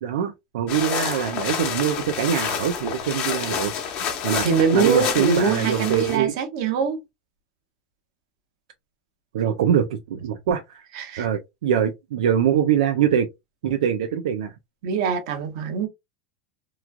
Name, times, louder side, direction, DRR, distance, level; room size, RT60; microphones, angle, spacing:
voice 1, 0.0-4.0 4.2-4.5 4.7-6.3 9.3-10.8 11.2-13.3 13.6-14.5, right 9 dB, 85° right, 0.4 m, -23 dB
sound 1, 0.7-6.2, left 7 dB, 45° left, 0.9 m, -28 dB
voice 2, 4.4-7.0 10.9-11.3 14.8-15.9, right 5 dB, 65° right, 0.9 m, -23 dB
3.0 x 2.4 x 2.2 m
supercardioid pair, 140°, 3 cm